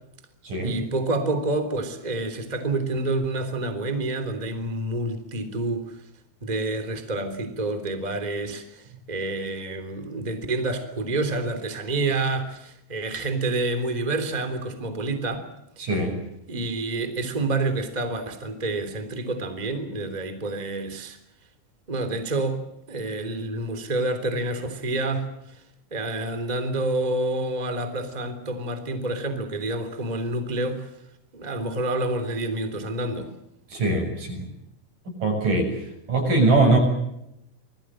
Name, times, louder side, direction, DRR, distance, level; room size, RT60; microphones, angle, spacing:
voice 1, 0.6-6.0 6.4-15.5 15.8-15.9 16.5-21.2 21.9-22.6 22.9-25.6 25.9-30.9 31.3-33.3, right 2 dB, 10° right, 8 dB, 2.6 m, -28 dB
voice 2, 15.8-16.1 33.7-34.4 35.2-35.7 36.1-36.8, right 2 dB, 45° right, 3 dB, 8.5 m, -21 dB
27.5 x 21.0 x 7.7 m, 0.82 s
omnidirectional pair, 5.3 m